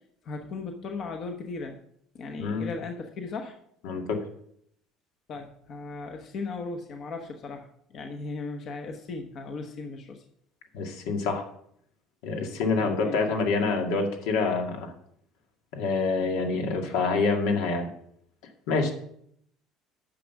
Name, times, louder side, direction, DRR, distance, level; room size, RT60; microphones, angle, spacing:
voice 1, 0.2-1.8 2.1-3.6 5.3-7.7 7.9-10.2 12.8-13.2, left 3 dB, 40° left, 4 dB, 1.0 m, -37 dB
voice 2, 2.4-2.7 3.8-4.2 10.7-11.5 12.2-14.9 15.7-17.9 18.7-18.9, left 4 dB, 80° left, 3 dB, 2.0 m, -26 dB
9.9 x 6.3 x 5.9 m, 0.68 s
cardioid pair, 160°, 0 cm